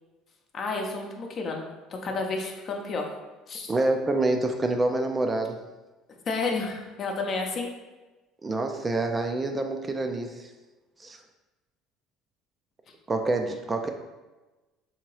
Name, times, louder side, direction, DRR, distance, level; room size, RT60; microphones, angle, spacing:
voice 1, 0.5-1.7 2.0-3.1 3.5-3.7 6.3-7.7, left 3 dB, 45° left, 2 dB, 0.7 m, -30 dB
voice 2, 3.7-5.6 8.4-10.5 11.0-11.2 13.1-13.9, right 2 dB, 25° right, 5 dB, 0.4 m, -27 dB
3.6 x 2.8 x 3.1 m, 1.2 s
hypercardioid pair, 70°, 0 cm